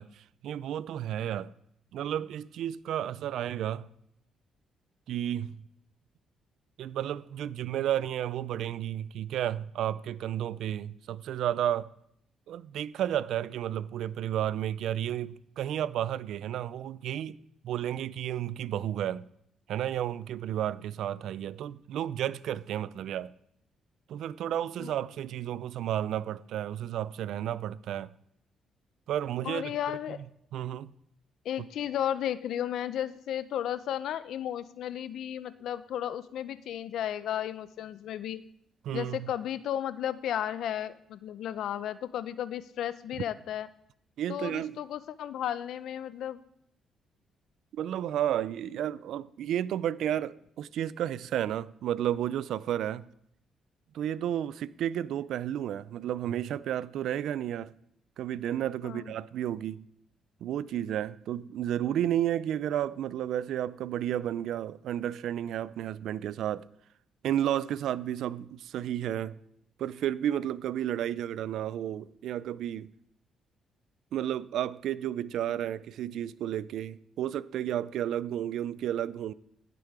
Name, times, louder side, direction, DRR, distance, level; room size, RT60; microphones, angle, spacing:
voice 1, 0.0-1.5 1.9-3.9 5.1-5.6 6.8-11.9 12.5-17.4 17.6-19.3 19.7-23.3 24.1-28.1 29.1-29.7 30.5-30.9 38.8-39.3 44.2-44.8 47.7-53.1 53.9-57.7 58.2-59.8 60.4-66.7 67.2-69.4 69.8-72.9 74.1-79.3, right 11 dB, 75° right, 0.4 m, -32 dB
voice 2, 29.4-30.2 31.4-38.4 38.9-43.7 44.3-46.4 58.8-59.1, left 10 dB, 75° left, 0.6 m, -34 dB
17.0 x 6.8 x 4.8 m
cardioid pair, 90°, 0 cm